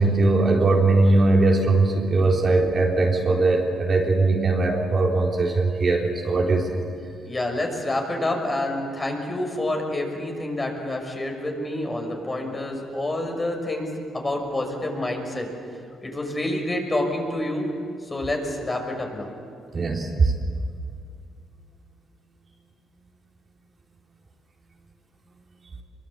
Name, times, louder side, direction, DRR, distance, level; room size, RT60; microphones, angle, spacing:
voice 1, 0.0-6.8 19.7-20.3, right 3 dB, 40° right, -1 dB, 4.0 m, -20 dB
voice 2, 7.2-15.5 16.0-17.7 18.0-19.3, left 1 dB, 25° left, 2 dB, 6.1 m, -28 dB
24.5 x 23.5 x 8.3 m, 2.3 s
cardioid pair, 90°, 0 cm